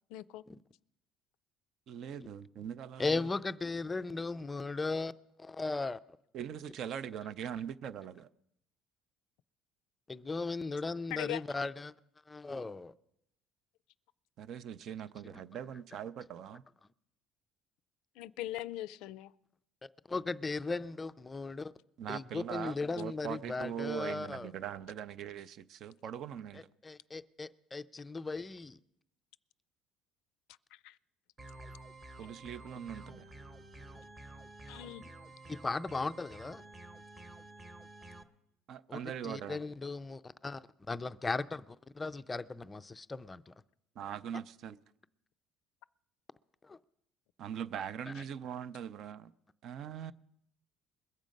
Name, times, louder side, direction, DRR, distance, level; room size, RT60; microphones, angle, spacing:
voice 1, 0.1-0.4 11.1-11.4 18.2-19.3 30.8-31.0 34.7-35.0, left 15 dB, 75° left, 0.4 m, -40 dB
voice 2, 1.9-3.3 6.3-8.3 14.4-16.6 22.0-26.7 32.2-33.3 38.7-39.6 44.0-44.8 47.4-49.3 49.6-50.1, right 9 dB, 50° right, 0.5 m, -41 dB
voice 3, 3.0-5.1 5.4-6.0 10.1-11.9 12.3-12.9 20.1-21.7 22.1-24.5 26.5-28.8 35.5-36.6 38.9-43.5 46.6-46.8 48.1-48.2, left 3 dB, 15° left, 0.4 m, -37 dB
sound 1, 31.4-38.2, right 2 dB, 20° right, 0.9 m, -51 dB
22.0 x 7.4 x 5.2 m
cardioid pair, 145°, 0 cm